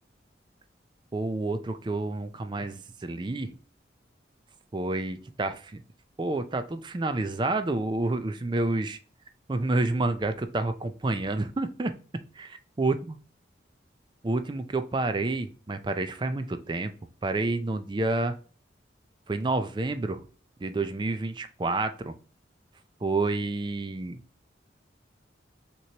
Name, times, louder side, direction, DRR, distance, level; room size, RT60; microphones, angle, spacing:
voice 1, 1.1-3.5 4.7-5.8 6.2-9.0 9.5-11.9 12.4-13.2 14.2-16.9 17.2-18.4 19.3-20.2 20.6-22.2 23.0-24.2, right 2 dB, 25° right, 9 dB, 0.4 m, -29 dB
6.1 x 3.0 x 2.8 m, 0.40 s
head